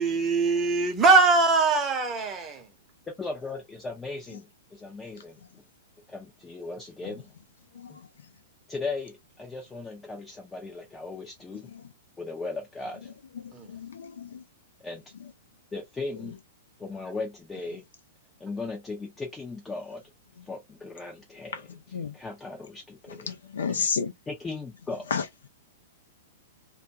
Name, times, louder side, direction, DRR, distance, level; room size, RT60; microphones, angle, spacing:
voice 1, 0.0-2.6 13.5-13.7 23.7-23.8, right 4 dB, 20° right, 0.9 m, -22 dB
voice 2, 3.2-5.4 6.1-7.3 7.9-8.0 8.7-11.7 12.2-13.1 14.8-15.0 15.7-16.4 16.8-17.8 18.4-20.0 20.5-23.3 24.3-25.1, left 3 dB, 10° left, 0.6 m, -37 dB
voice 3, 13.7-14.4 21.9-22.1 23.3-24.1 25.1-25.2, left 6 dB, 65° left, 0.5 m, -30 dB
2.3 x 2.2 x 2.7 m
figure-of-eight pair, 105°, 0 cm